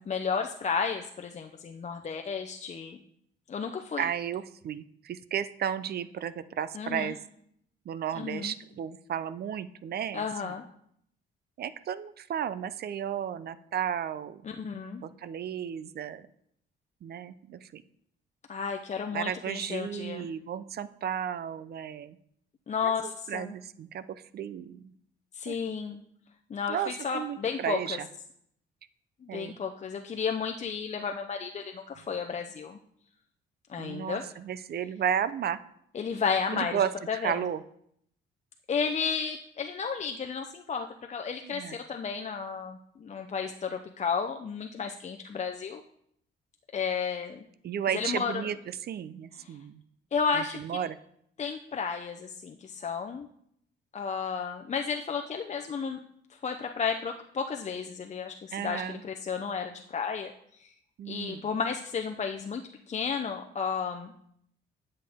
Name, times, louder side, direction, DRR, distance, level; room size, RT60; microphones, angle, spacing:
voice 1, 0.0-3.0 3.5-4.0 6.7-7.1 8.1-8.5 10.1-10.6 14.4-15.0 18.5-20.2 22.7-23.5 25.3-26.0 26.5-28.0 29.2-32.8 33.7-34.2 35.9-36.8 37.1-37.4 38.7-45.8 46.7-47.4 47.9-48.4 49.4-49.5 50.1-50.6 51.4-53.3 53.9-56.0 56.3-60.3 60.6-60.7 61.1-62.6 62.9-64.1, left 6 dB, 35° left, 4 dB, 0.6 m, -32 dB
voice 2, 4.0-7.2 7.9-10.6 11.6-14.4 15.0-16.3 17.0-17.8 19.1-22.2 22.8-22.9 23.3-24.9 25.5-25.6 26.7-28.1 29.3-29.6 33.8-35.6 36.5-36.9 37.2-37.6 41.4-41.8 47.6-49.8 50.3-51.0 58.5-59.0 61.0-61.5, right 9 dB, 55° right, 15 dB, 0.5 m, -33 dB
9.9 x 6.6 x 3.5 m, 0.70 s
cardioid pair, 90°, 20 cm